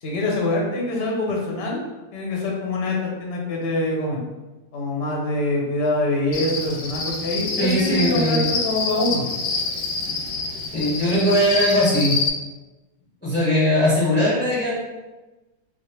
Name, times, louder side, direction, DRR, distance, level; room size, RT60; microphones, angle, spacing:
voice 1, 0.0-1.8 2.1-4.2 4.7-9.2, left 2 dB, 50° left, -1 dB, 0.8 m, -24 dB
Cricket, 6.3-12.3, left 4 dB, 80° left, 1.1 m, -27 dB
voice 2, 7.6-8.5 10.7-12.2 13.2-14.7, equal, 5° left, -8 dB, 1.3 m, -20 dB
3.7 x 2.5 x 3.1 m, 1.1 s
omnidirectional pair, 1.7 m